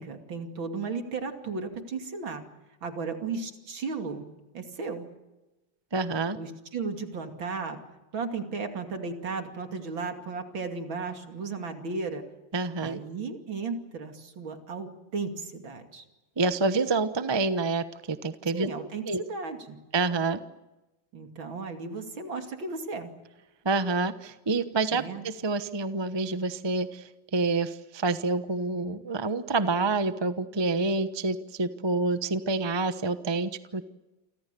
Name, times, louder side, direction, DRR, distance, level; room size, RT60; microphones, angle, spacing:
voice 1, 0.0-2.4 2.8-4.3 4.5-5.1 6.4-7.8 8.1-12.2 12.8-16.0 18.5-19.8 21.1-23.1 24.9-25.2, right 4 dB, 70° right, 5 dB, 3.4 m, -35 dB
voice 2, 5.9-6.4 12.5-13.0 16.4-18.7 19.1-19.2 19.9-20.4 23.6-33.9, right 3 dB, 25° right, 11 dB, 0.6 m, -28 dB
29.0 x 25.0 x 6.9 m, 1.0 s
omnidirectional pair, 2.3 m